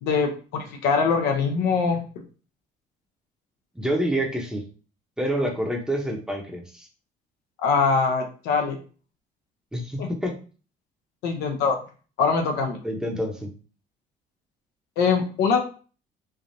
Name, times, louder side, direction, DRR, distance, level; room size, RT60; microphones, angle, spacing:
voice 1, 0.0-2.0 7.6-8.8 10.0-10.1 11.2-11.8 12.2-12.8 15.0-15.6, left 5 dB, 90° left, 3 dB, 0.6 m, -23 dB
voice 2, 3.7-4.6 5.2-6.9 9.7-10.4 12.8-13.5, right 1 dB, 5° right, 1 dB, 0.7 m, -27 dB
3.3 x 2.4 x 2.6 m, 0.37 s
cardioid pair, 110°, 17 cm